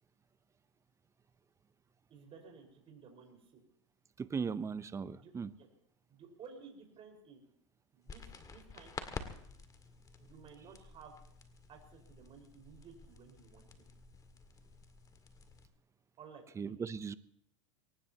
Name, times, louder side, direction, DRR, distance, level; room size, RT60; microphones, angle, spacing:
voice 1, 2.1-3.6 5.1-5.3 5.6-5.7 6.1-7.4 7.9-9.0 10.2-11.1 11.7-13.7 16.2-16.9, right 6 dB, 35° right, 2 dB, 5.1 m, -55 dB
voice 2, 4.2-5.5 16.6-17.2, right 5 dB, 15° right, 15 dB, 0.7 m, -38 dB
sound 1, 8.1-15.7, left 4 dB, 20° left, 2.0 m, -50 dB
23.0 x 19.0 x 2.9 m, 0.70 s
hypercardioid pair, 110°, 17 cm